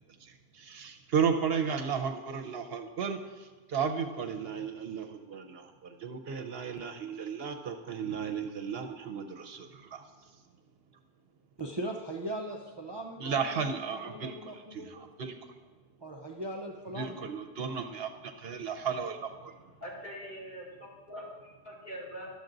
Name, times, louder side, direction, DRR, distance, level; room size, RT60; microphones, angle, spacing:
voice 1, 0.2-3.2 3.7-10.0 13.2-14.3 14.7-15.3 16.9-19.5, right 6 dB, 70° right, 6 dB, 1.0 m, -34 dB
voice 2, 11.6-15.1 16.0-17.3, right 1 dB, 30° right, 0 dB, 0.6 m, -39 dB
voice 3, 19.8-22.3, equal, 45° left, -6 dB, 2.7 m, -43 dB
12.0 x 7.0 x 3.9 m, 1.3 s
omnidirectional pair, 1.1 m